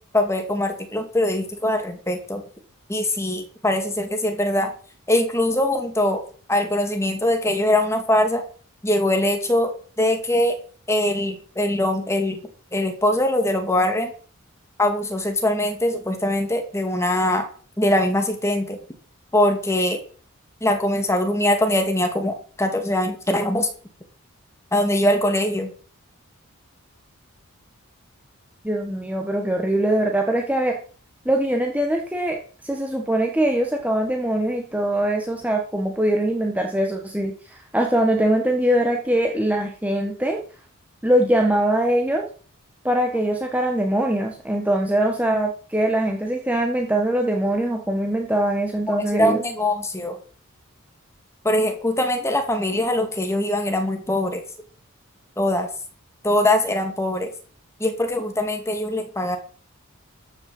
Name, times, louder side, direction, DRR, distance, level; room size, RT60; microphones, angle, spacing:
voice 1, 0.1-2.4 2.9-4.7 5.1-6.2 6.5-8.4 8.8-9.7 10.0-10.6 10.9-12.4 12.7-14.1 14.8-17.5 17.8-18.8 19.3-20.0 20.6-23.7 24.7-25.7 48.9-50.2 51.4-54.4 55.4-55.7 56.2-57.3 57.8-59.4, left 1 dB, 10° left, 5 dB, 2.4 m, -22 dB
voice 2, 28.6-30.8 31.2-32.4 32.6-40.4 41.0-42.2 42.8-49.4, right 1 dB, 5° right, 2 dB, 1.4 m, -22 dB
13.5 x 6.6 x 7.8 m, 0.42 s
head